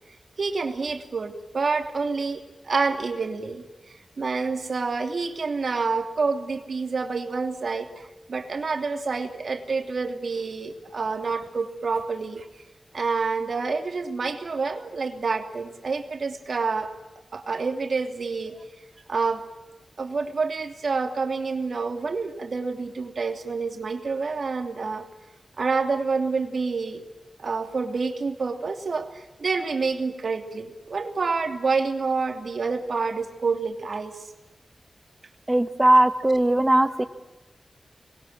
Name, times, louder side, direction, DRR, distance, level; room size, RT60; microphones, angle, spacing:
voice 1, 0.4-8.0 8.3-12.5 12.9-16.9 17.3-18.6 19.1-19.5 20.0-25.0 25.6-27.0 27.4-34.2, right 4 dB, 70° right, 5 dB, 3.0 m, -28 dB
voice 2, 35.5-37.0, right 1 dB, 20° right, 10 dB, 1.7 m, -19 dB
27.0 x 21.5 x 8.9 m, 1.1 s
wide cardioid pair, 65°, 0 cm